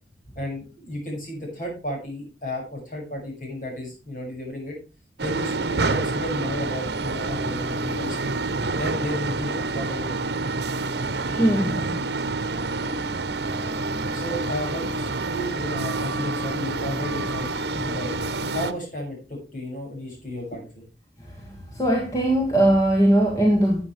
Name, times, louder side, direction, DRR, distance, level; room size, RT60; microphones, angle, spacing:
voice 1, 0.4-4.8 5.2-8.2 8.7-10.4 14.1-18.2 18.5-20.8, left 1 dB, 45° left, 0 dB, 6.9 m, -33 dB
sound 1, 5.2-18.7, right 3 dB, 75° right, 0.9 m, -27 dB
voice 2, 11.3-12.0 21.7-23.8, right 1 dB, 20° left, -1 dB, 2.0 m, -20 dB
13.5 x 8.6 x 3.3 m, 0.32 s
head